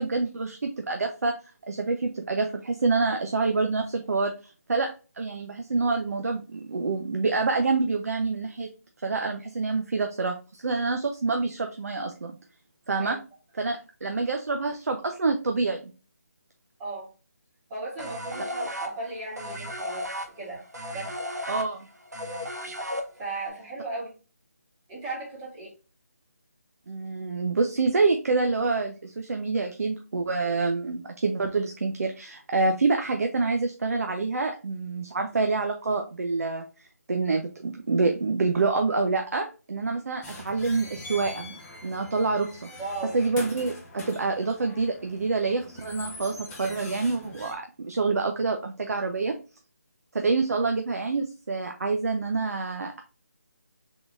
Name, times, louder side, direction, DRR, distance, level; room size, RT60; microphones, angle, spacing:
voice 1, 0.0-1.4 1.7-4.9 5.2-8.7 9.0-12.3 12.9-13.2 13.6-15.9 21.5-21.9 26.9-42.7 43.1-49.4 50.1-53.0, right 3 dB, 65° right, 4 dB, 0.6 m, -27 dB
voice 2, 16.8-17.1 17.7-20.1 20.4-20.6 20.9-21.1 23.2-24.1 24.9-25.7 42.8-43.2, right 2 dB, 20° right, -6 dB, 2.0 m, -36 dB
sound 1, 18.0-23.5, equal, 90° right, 0.9 m, -35 dB
sound 2, 40.2-47.5, left 2 dB, 10° left, 0.7 m, -43 dB
3.7 x 3.6 x 2.4 m, 0.33 s
figure-of-eight pair, 160°, 9 cm